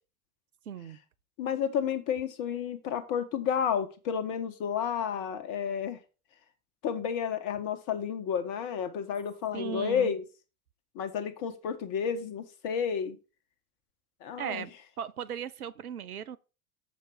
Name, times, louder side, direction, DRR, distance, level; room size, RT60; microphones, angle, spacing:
voice 1, 0.7-1.0 9.5-10.1 14.4-14.7 15.0-16.4, right 8 dB, 80° right, 0.7 m, -37 dB
voice 2, 1.4-6.0 6.8-10.2 10.9-13.2 14.2-14.7, left 7 dB, 45° left, 1.6 m, -31 dB
7.7 x 6.7 x 4.3 m
figure-of-eight pair, 80°, 44 cm